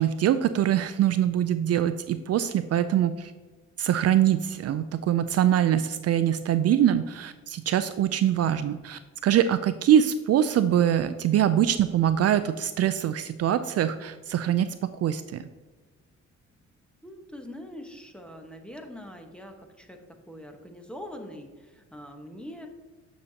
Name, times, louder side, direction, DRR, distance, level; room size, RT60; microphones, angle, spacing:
voice 1, 0.0-3.3 3.8-14.7 15.0-15.4, right 10 dB, 55° right, 11 dB, 0.4 m, -23 dB
voice 2, 17.0-22.7, left 1 dB, 5° left, 4 dB, 1.1 m, -43 dB
9.4 x 6.5 x 2.8 m, 1.3 s
cardioid pair, 90°, 30 cm